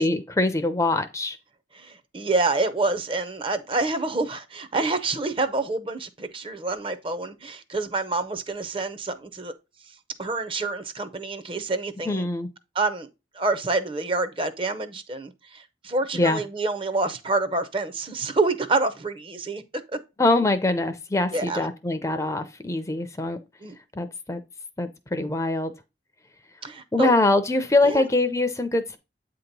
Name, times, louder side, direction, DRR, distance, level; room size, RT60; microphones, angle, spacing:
voice 1, 0.0-1.4 12.1-12.5 16.1-16.4 20.2-23.4 24.0-24.4 24.8-25.7 26.9-29.0, left 2 dB, 15° left, 0.5 m, -23 dB
voice 2, 1.7-9.5 10.2-12.3 12.7-13.1 13.3-19.6 21.3-21.6 23.6-23.8 26.6-27.1 27.8-28.0, right 3 dB, 30° right, 0.6 m, -27 dB
8.5 x 2.9 x 5.2 m
head